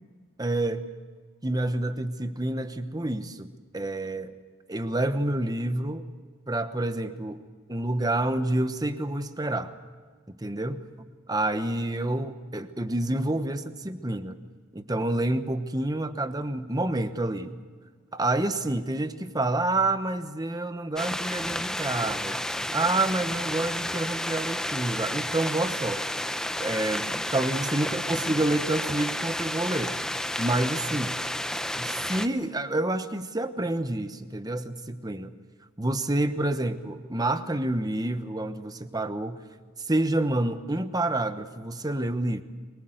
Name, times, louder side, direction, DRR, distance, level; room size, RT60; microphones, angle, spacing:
voice 1, 0.4-0.9 1.4-4.3 4.7-6.0 6.5-7.4 7.7-9.7 10.3-10.8 11.3-14.4 14.7-17.6 18.1-22.4 22.7-26.1 26.6-30.0 30.4-31.2 31.8-35.3 35.8-39.4 39.8-42.4, right 2 dB, 20° right, 10 dB, 1.1 m, -28 dB
sound 1, 21.0-32.3, left 1 dB, 5° left, 0.8 m, -31 dB
24.0 x 22.5 x 8.0 m, 1.5 s
head